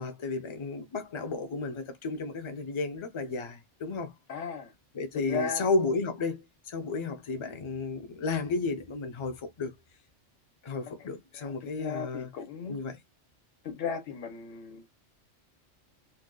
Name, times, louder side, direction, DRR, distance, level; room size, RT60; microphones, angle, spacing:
voice 1, 0.0-4.1 4.9-9.7 10.6-12.3 12.7-13.0, left 3 dB, 45° left, 0.4 m, -33 dB
voice 2, 4.3-4.7 5.1-5.7 10.9-11.1 11.4-12.8 13.6-14.9, left 6 dB, 75° left, 1.3 m, -36 dB
2.7 x 2.2 x 3.6 m
omnidirectional pair, 1.3 m